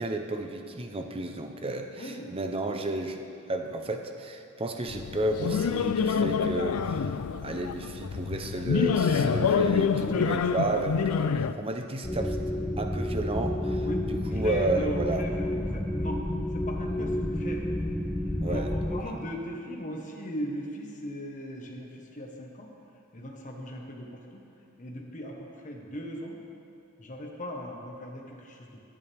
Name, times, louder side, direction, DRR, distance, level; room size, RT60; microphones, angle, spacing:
voice 1, 0.0-3.2 3.5-7.1 7.4-12.4 12.8-15.3 18.4-18.7 19.1-19.2, right 2 dB, 25° right, 5 dB, 0.7 m, -32 dB
voice 2, 1.9-2.3 10.0-10.7 11.4-11.7 13.8-14.0 14.3-16.2 16.5-17.9 18.4-22.7 23.1-24.4 24.8-26.3 27.0-28.8, equal, 35° left, 0 dB, 1.3 m, -38 dB
sound 1, 4.9-11.5, left 6 dB, 70° left, 0.4 m, -27 dB
sound 2, 12.0-19.0, left 1 dB, 5° left, 0.4 m, -30 dB
22.0 x 7.4 x 3.5 m, 2.7 s
head